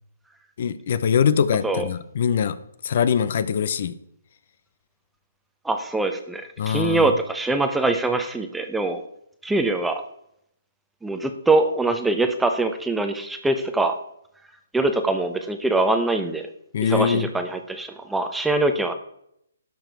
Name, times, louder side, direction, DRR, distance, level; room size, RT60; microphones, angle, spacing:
voice 1, 0.6-2.6 2.8-3.9 6.6-7.1 16.7-17.3, left 7 dB, 50° left, 14 dB, 0.6 m, -22 dB
voice 2, 5.6-9.0 9.4-10.0 11.0-14.0 14.7-16.5 16.8-18.9, right 2 dB, 5° right, 7 dB, 0.7 m, -23 dB
12.0 x 6.0 x 4.6 m, 0.74 s
hypercardioid pair, 160°, 0 cm